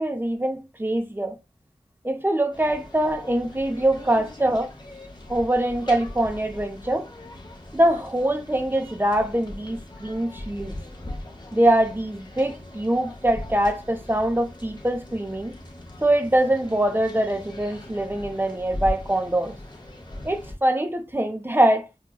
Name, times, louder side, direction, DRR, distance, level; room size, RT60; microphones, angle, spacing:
voice 1, 0.0-1.4 2.0-4.7 5.3-7.1 7.7-10.8 11.5-15.5 16.0-19.6 20.2-21.9, right 1 dB, 15° right, 0.6 m, -23 dB
sound 1, 2.5-20.5, left 1 dB, 35° left, 0.7 m, -40 dB
4.7 x 2.2 x 2.2 m
wide cardioid pair, 40°, 13 cm